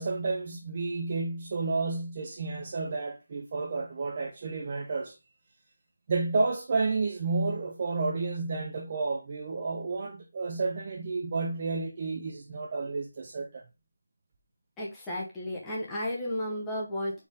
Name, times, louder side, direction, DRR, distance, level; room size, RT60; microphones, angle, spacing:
voice 1, 0.0-5.2 6.1-13.6, right 3 dB, 25° right, 0.4 m, -31 dB
voice 2, 14.8-17.3, left 1 dB, 5° left, 0.8 m, -33 dB
4.2 x 3.4 x 3.5 m
figure-of-eight pair, 175°, 0 cm